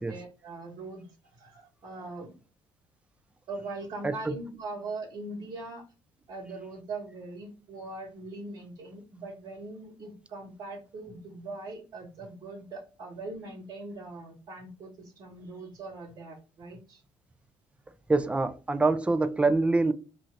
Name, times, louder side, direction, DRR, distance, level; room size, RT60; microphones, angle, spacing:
voice 1, 0.0-2.3 3.5-5.8 6.3-17.0, right 2 dB, 50° right, 1.2 m, -41 dB
voice 2, 4.0-4.3 18.1-19.9, right 3 dB, 10° right, 0.3 m, -25 dB
2.7 x 2.5 x 3.1 m
cardioid pair, 105°, 11 cm